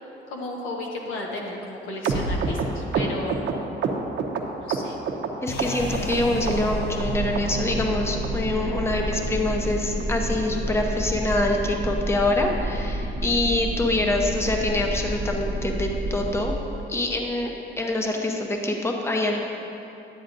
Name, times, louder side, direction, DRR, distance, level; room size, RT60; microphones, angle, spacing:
voice 1, 0.3-3.5 4.6-5.0, left 2 dB, 90° left, -1 dB, 1.1 m, -33 dB
sound 1, 2.0-5.3 5.6-6.2 6.5-7.1 7.4-7.5 7.7-7.9 8.2-8.3 8.6-8.8 9.1-9.2 9.5-9.7 10.0-10.1 10.4-10.6 10.9-11.0 11.2-11.4 11.8-11.9, right 4 dB, 65° right, 0.7 m, -27 dB
voice 2, 5.4-16.5 16.9-19.5, left 2 dB, 10° left, 1 dB, 0.8 m, -25 dB
sound 2, 5.5-11.6, equal, 60° left, 0.6 m, -35 dB
sound 3, 5.8-16.6, right 1 dB, 25° right, 0.6 m, -30 dB
10.5 x 7.8 x 2.6 m, 2.9 s
cardioid pair, 90°, 20 cm